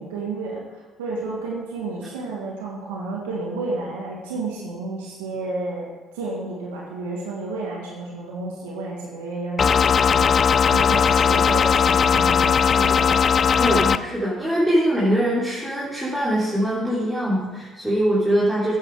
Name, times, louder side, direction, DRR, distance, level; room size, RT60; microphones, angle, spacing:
voice 1, 0.0-5.9 6.1-10.3 10.7-13.8, right 3 dB, 85° right, -3 dB, 1.8 m, -31 dB
sound 1, 9.6-14.0, left 7 dB, 45° left, 0.4 m, -18 dB
voice 2, 13.6-18.7, equal, 5° right, -8 dB, 3.4 m, -22 dB
9.4 x 8.4 x 4.7 m, 1.2 s
hypercardioid pair, 60°, 0 cm